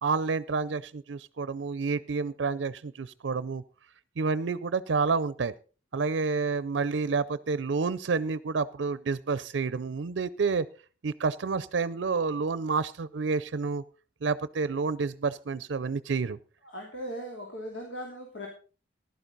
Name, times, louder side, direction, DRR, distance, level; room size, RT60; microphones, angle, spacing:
voice 1, 0.0-3.6 4.2-5.5 5.9-10.7 11.0-13.8 14.2-16.4, right 4 dB, 80° right, 17 dB, 0.5 m, -29 dB
voice 2, 16.6-18.5, equal, 85° left, -1 dB, 3.0 m, -38 dB
15.0 x 11.5 x 3.9 m, 0.36 s
head